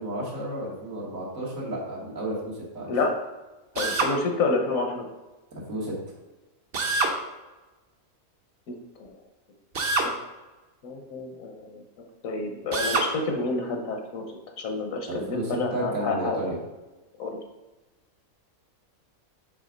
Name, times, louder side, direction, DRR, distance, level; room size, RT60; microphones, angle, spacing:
voice 1, 0.0-3.0 5.5-6.0 15.1-16.6, right 1 dB, 75° right, -4 dB, 2.0 m, -32 dB
Drill, 3.7-4.2 6.7-7.2 9.7-10.1 12.7-13.1, right 3 dB, 50° right, 1.0 m, -25 dB
voice 2, 3.8-5.1 9.1-9.2 10.0-10.1 10.8-16.4 17.2-17.4, left 3 dB, 75° left, 3 dB, 1.3 m, -29 dB
7.5 x 3.5 x 5.1 m, 1.1 s
omnidirectional pair, 1.4 m